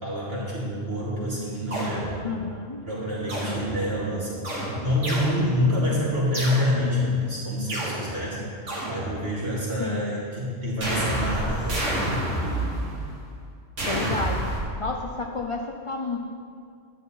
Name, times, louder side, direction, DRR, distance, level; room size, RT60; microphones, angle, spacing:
voice 1, 0.0-2.1 2.8-4.4 4.8-8.4 8.9-12.1, left 1 dB, 50° right, -8 dB, 3.3 m, -27 dB
sound 1, 1.7-2.5 3.3-4.1 4.4-5.8 6.3-7.1 7.7-9.6 10.8-13.3 13.8-14.6, right 1 dB, 65° right, 2.4 m, -30 dB
voice 2, 2.2-2.9 9.8-10.2 13.9-14.5 14.8-16.2, left 4 dB, 45° left, 2 dB, 0.4 m, -31 dB
12.0 x 8.9 x 4.1 m, 2.3 s
omnidirectional pair, 1.3 m